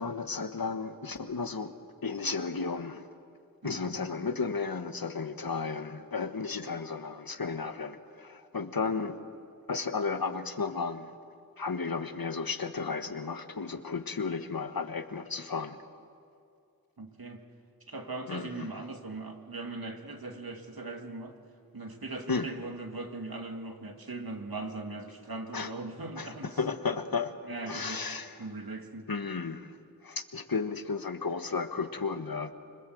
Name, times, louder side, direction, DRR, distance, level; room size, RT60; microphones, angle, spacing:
voice 1, 0.0-1.7 2.0-3.1 3.6-9.2 9.7-11.1 11.6-15.8 18.3-18.7 22.3-22.5 25.5-25.7 26.2-27.3 27.7-28.4 29.1-29.8 30.0-32.5, left 4 dB, 75° left, 9 dB, 1.5 m, -33 dB
voice 2, 3.6-4.0 17.0-17.4 17.9-21.4 21.7-26.6 27.4-28.0 28.4-29.1, right 2 dB, 80° right, 4 dB, 2.3 m, -39 dB
26.0 x 25.0 x 7.9 m, 2.4 s
wide cardioid pair, 55°, 36 cm